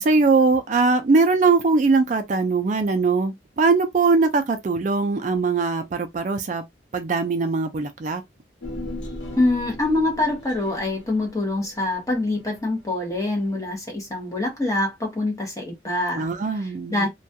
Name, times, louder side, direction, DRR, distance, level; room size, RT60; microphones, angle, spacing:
voice 1, 0.0-6.6 6.9-8.2 16.1-17.1, right 4 dB, 40° right, 0.3 m, -21 dB
Human voice, 8.6-13.2 13.5-13.6, left 1 dB, 80° left, 0.9 m, -38 dB
voice 2, 9.4-16.3 16.9-17.1, left 2 dB, 15° left, 0.8 m, -24 dB
2.3 x 2.2 x 2.6 m
head